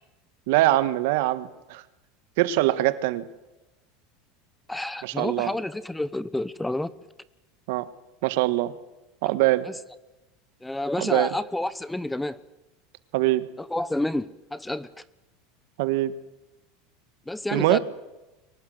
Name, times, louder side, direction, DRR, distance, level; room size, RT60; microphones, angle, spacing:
voice 1, 0.5-1.8 2.4-3.2 5.0-5.5 7.7-7.9 8.2-8.7 9.2-9.7 11.0-11.3 13.1-13.5 15.8-16.2 17.5-17.8, right 16 dB, 70° right, 1.5 m, -23 dB
voice 2, 4.7-6.9 9.6-9.7 10.6-12.4 13.6-14.9 17.3-17.8, left 1 dB, 5° left, 0.9 m, -29 dB
24.0 x 18.5 x 7.8 m
supercardioid pair, 125°, 0 cm